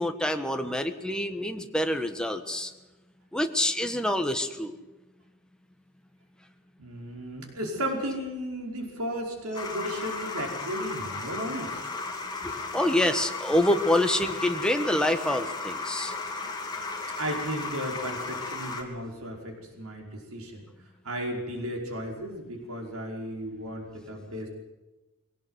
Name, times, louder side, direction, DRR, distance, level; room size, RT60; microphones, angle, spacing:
voice 1, 0.0-2.7 3.3-4.7 12.4-16.1, left 1 dB, 5° left, 6 dB, 1.4 m, -26 dB
voice 2, 6.8-11.8 17.2-20.7 21.0-24.5, equal, 85° right, 1 dB, 5.2 m, -34 dB
sound 1, 9.5-18.8, left 3 dB, 20° left, 2.9 m, -35 dB
22.5 x 17.5 x 8.0 m, 1.1 s
head